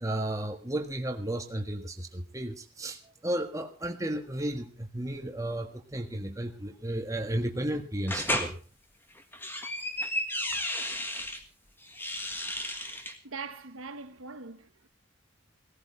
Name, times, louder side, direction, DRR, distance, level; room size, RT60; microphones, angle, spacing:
voice 1, 0.0-3.0 3.2-8.5, right 1 dB, 15° right, 1.5 m, -33 dB
sound 1, 8.1-8.5 9.2-11.4 11.9-13.1, left 1 dB, 10° left, 1.7 m, -33 dB
voice 2, 13.2-14.9, right 4 dB, 80° right, 1.4 m, -42 dB
18.0 x 14.0 x 4.5 m
head